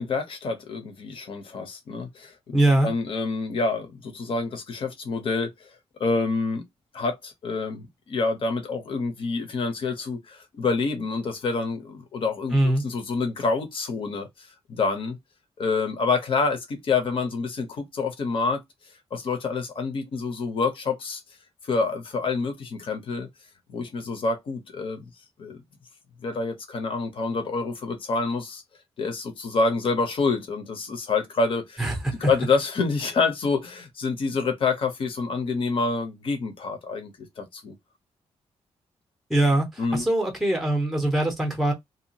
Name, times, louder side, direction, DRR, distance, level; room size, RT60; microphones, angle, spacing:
voice 1, 0.0-2.6 2.8-5.7 6.0-6.6 6.9-12.5 12.8-15.2 15.6-18.6 19.1-21.2 21.6-23.3 23.7-25.1 25.4-25.6 26.2-28.6 29.0-31.8 32.2-37.1 37.4-37.7 39.8-40.0, left 4 dB, 50° left, 0.8 m, -27 dB
voice 2, 2.5-2.9 12.5-12.8 31.8-32.3 39.3-41.7, right 1 dB, ahead, 0.7 m, -22 dB
2.7 x 2.4 x 2.8 m
wide cardioid pair, 170°, 11 cm